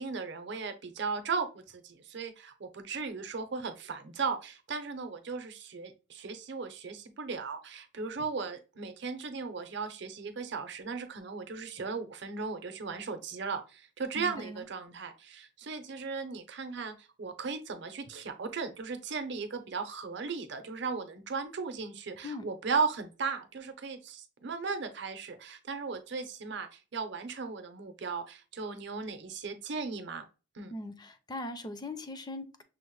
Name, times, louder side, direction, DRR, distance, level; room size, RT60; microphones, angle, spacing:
voice 1, 0.0-30.2 30.5-30.7, right 4 dB, 65° right, 0.7 m, -36 dB
voice 2, 14.2-14.6 22.2-22.5 30.7-32.6, left 2 dB, 20° left, 0.5 m, -40 dB
6.2 x 2.1 x 3.1 m
head